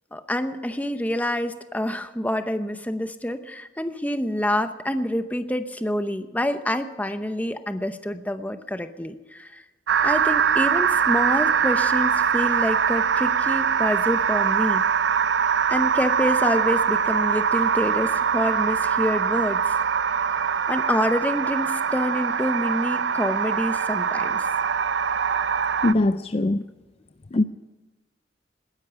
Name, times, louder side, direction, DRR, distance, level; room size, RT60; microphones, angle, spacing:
voice 1, 0.1-9.6 10.0-14.8 15.7-19.8 20.7-24.5, left 1 dB, 10° left, 9 dB, 0.8 m, -27 dB
sound 1, 9.9-25.9, right 7 dB, 80° right, 0.5 m, -23 dB
voice 2, 25.8-26.6 27.3-27.4, left 2 dB, 35° left, 11 dB, 0.4 m, -21 dB
19.5 x 10.5 x 5.8 m, 1.2 s
head